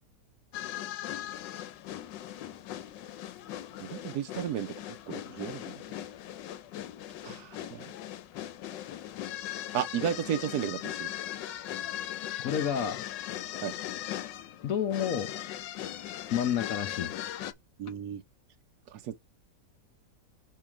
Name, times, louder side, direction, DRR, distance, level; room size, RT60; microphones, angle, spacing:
sound 1, 0.5-17.5, left 12 dB, 90° left, 1.4 m, -39 dB
voice 1, 3.8-5.8 7.2-7.9 9.7-11.1 13.6-13.7 17.8-18.2 18.9-19.2, right 9 dB, 70° right, 1.0 m, -34 dB
voice 2, 12.4-13.1 14.6-15.3 16.3-17.1, left 8 dB, 60° left, 1.0 m, -29 dB
6.4 x 3.2 x 5.8 m
omnidirectional pair, 1.9 m